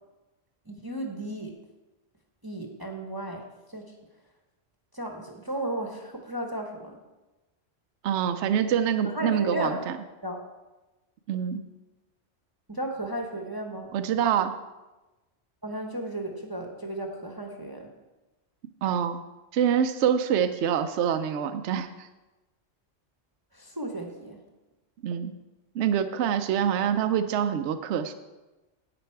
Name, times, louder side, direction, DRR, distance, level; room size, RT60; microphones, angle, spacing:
voice 1, 0.7-1.5 2.4-3.4 3.7-3.9 4.9-6.9 9.0-9.9 10.2-10.4 12.7-13.9 15.6-17.9 23.5-24.4, right 1 dB, 20° right, 1 dB, 1.0 m, -34 dB
voice 2, 8.0-9.9 11.3-11.6 13.9-14.5 18.8-19.2 19.5-21.9 25.0-25.3 25.8-28.1, right 8 dB, 70° right, 9 dB, 0.9 m, -25 dB
11.0 x 8.8 x 4.6 m, 1.1 s
omnidirectional pair, 1.2 m